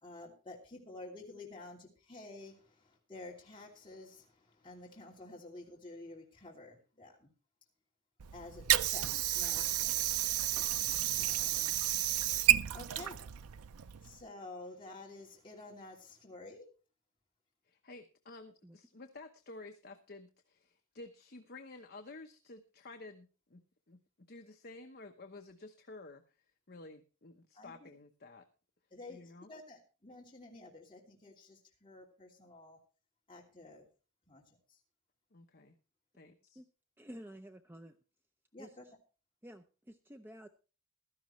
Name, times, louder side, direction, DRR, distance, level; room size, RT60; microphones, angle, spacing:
voice 1, 0.0-7.3 8.3-9.1 9.3-10.1 11.2-12.1 12.7-13.2 14.0-16.7 27.5-27.9 28.9-32.8 33.3-33.8 34.3-34.4 34.7-34.8 38.5-38.8, left 2 dB, 25° left, -3 dB, 2.8 m, -51 dB
Water / Sink (filling or washing), 8.2-14.2, right 13 dB, 90° right, 0.5 m, -31 dB
voice 2, 17.6-23.6 23.9-24.0 24.3-26.4 26.7-28.4 29.1-29.5 35.3-35.8 36.1-36.6, left 2 dB, 45° left, 5 dB, 1.0 m, -52 dB
voice 3, 37.0-38.0 38.6-38.9 39.4-40.5, equal, 10° right, 7 dB, 0.6 m, -51 dB
15.5 x 12.5 x 3.2 m, 0.35 s
head